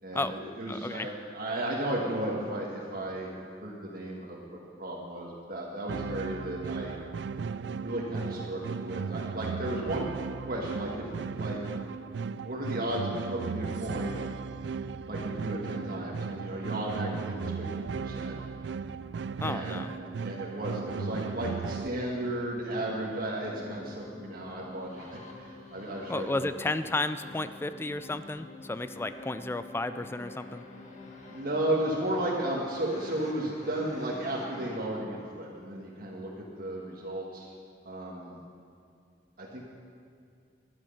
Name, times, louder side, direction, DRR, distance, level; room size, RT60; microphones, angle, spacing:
voice 1, 0.0-6.9 7.8-10.1 10.4-11.1 11.3-11.6 12.4-14.3 15.1-18.4 19.4-19.9 20.1-26.5 31.3-36.3 36.6-37.5 37.8-38.4 39.4-39.6, right 1 dB, 55° right, -4 dB, 1.6 m, -34 dB
voice 2, 0.7-1.1 19.4-20.0 26.1-30.6, left 2 dB, 15° left, 12 dB, 0.4 m, -33 dB
sound 1, 5.9-21.9, right 5 dB, 75° right, 0.4 m, -36 dB
sound 2, 21.5-34.8, left 3 dB, 45° left, 1.6 m, -47 dB
12.0 x 12.0 x 5.6 m, 2.4 s
head